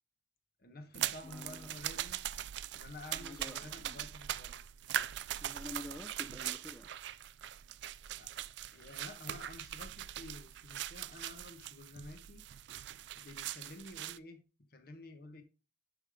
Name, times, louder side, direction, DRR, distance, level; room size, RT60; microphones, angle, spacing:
voice 1, 0.6-2.2 2.7-4.5 8.1-8.5 8.7-12.4 13.1-14.4 14.7-15.4, left 2 dB, 55° left, 1.3 m, -51 dB
sound 1, 0.9-14.2, right 12 dB, 70° right, 0.4 m, -41 dB
voice 2, 1.2-1.7 3.1-4.0 5.4-6.9, left 1 dB, 10° left, 0.6 m, -48 dB
11.0 x 5.1 x 3.6 m
head